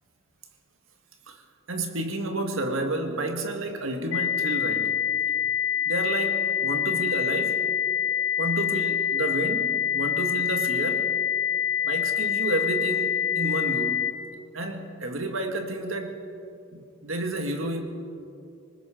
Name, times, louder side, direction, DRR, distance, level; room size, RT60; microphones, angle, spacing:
voice 1, 1.7-5.0 5.9-7.6 8.4-11.1 11.8-14.1 14.5-16.2 16.7-17.8, right 2 dB, 70° right, 4 dB, 2.0 m, -30 dB
sound 1, 4.1-14.1, left 9 dB, 65° left, 1.2 m, -26 dB
26.5 x 19.5 x 5.1 m, 2.6 s
head